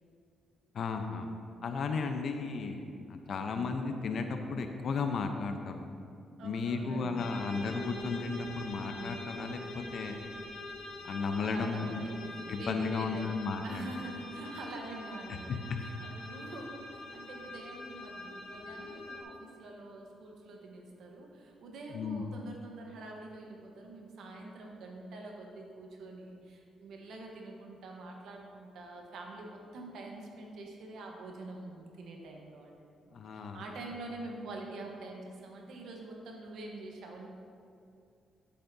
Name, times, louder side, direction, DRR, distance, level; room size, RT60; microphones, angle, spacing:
voice 1, 0.7-1.3 1.6-2.8 3.1-5.7 6.4-10.2 11.0-12.0 12.5-13.9 15.5-15.6 21.9-22.2 33.1-33.6, left 4 dB, 60° left, 5 dB, 0.7 m, -34 dB
voice 2, 6.4-7.4 11.3-37.3, right 2 dB, 75° right, 0 dB, 1.1 m, -45 dB
sound 1, 7.2-19.2, left 1 dB, 85° left, 1.3 m, -45 dB
10.5 x 8.5 x 2.7 m, 2.5 s
cardioid pair, 90°, 0 cm